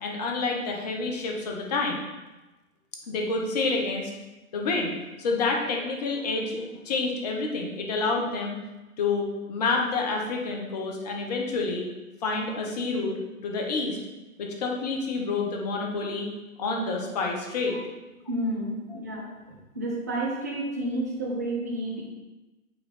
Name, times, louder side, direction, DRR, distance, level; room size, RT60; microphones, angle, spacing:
voice 1, 0.0-2.1 3.1-4.1 4.5-8.6 9.0-11.9 12.2-14.0 14.4-16.3 16.6-17.8 18.9-19.0, left 3 dB, 25° left, 1 dB, 0.9 m, -28 dB
voice 2, 18.3-19.3 19.7-22.0, right 1 dB, 10° right, -3 dB, 0.5 m, -30 dB
8.7 x 3.3 x 4.1 m, 1.1 s
figure-of-eight pair, 130°, 44 cm